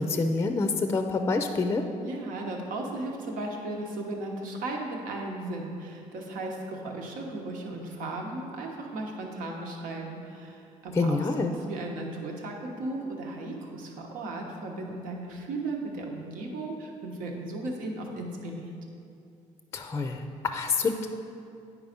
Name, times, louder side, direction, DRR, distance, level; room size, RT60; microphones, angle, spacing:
voice 1, 0.0-1.8 10.9-11.5 19.7-21.1, left 3 dB, 20° left, 6 dB, 0.4 m, -27 dB
voice 2, 2.0-11.2 11.5-18.8, right 2 dB, 85° right, 0 dB, 1.2 m, -36 dB
9.5 x 4.8 x 5.1 m, 2.6 s
cardioid pair, 120°, 14 cm